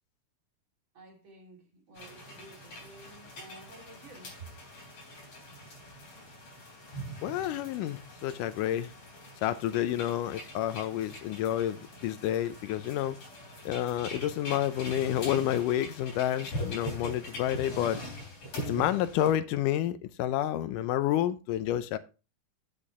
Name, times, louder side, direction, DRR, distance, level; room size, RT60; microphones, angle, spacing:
voice 1, 0.9-4.5, right 3 dB, 40° right, 3.4 m, -52 dB
sound 1, 2.0-19.3, equal, 45° left, 4.3 m, -43 dB
voice 2, 7.2-8.9 9.4-13.2 13.7-18.0 18.7-22.0, left 12 dB, 85° left, 2.2 m, -29 dB
8.4 x 8.0 x 3.6 m
omnidirectional pair, 3.7 m